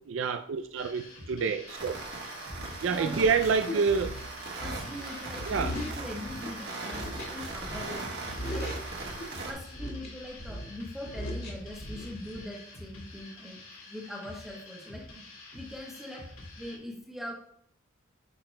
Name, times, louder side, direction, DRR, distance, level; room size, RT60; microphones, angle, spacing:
voice 1, 0.1-2.0 2.8-4.1 5.5-5.7, right 5 dB, 70° right, 7 dB, 0.4 m, -27 dB
sound 1, 0.8-16.8, left 2 dB, 85° left, 2.3 m, -48 dB
sound 2, 1.7-9.5, right 3 dB, 50° right, 1.5 m, -39 dB
sound 3, 1.8-1.9 2.5-6.6 6.9-8.0 8.3-9.3 9.7-12.4, equal, 50° left, 2.1 m, -39 dB
voice 2, 2.9-3.3 3.7-3.8 4.6-8.1 8.5-8.8 9.3-13.6 13.9-15.2 15.5-16.3 16.6-17.3, left 1 dB, ahead, -2 dB, 1.1 m, -42 dB
8.8 x 5.8 x 2.2 m, 0.66 s
head